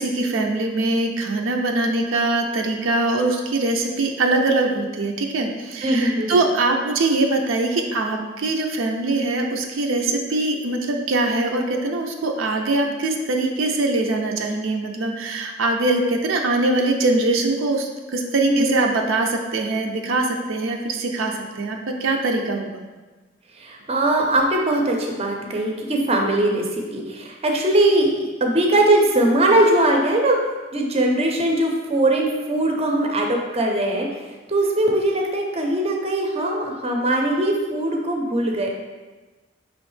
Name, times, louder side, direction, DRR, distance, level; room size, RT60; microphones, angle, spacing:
voice 1, 0.0-22.8, right 2 dB, 80° right, 3 dB, 0.5 m, -22 dB
voice 2, 5.8-6.4 18.5-18.7 23.5-30.4 30.7-34.2 34.5-38.7, right 1 dB, 30° right, 1 dB, 0.5 m, -20 dB
4.9 x 3.0 x 3.1 m, 1.2 s
head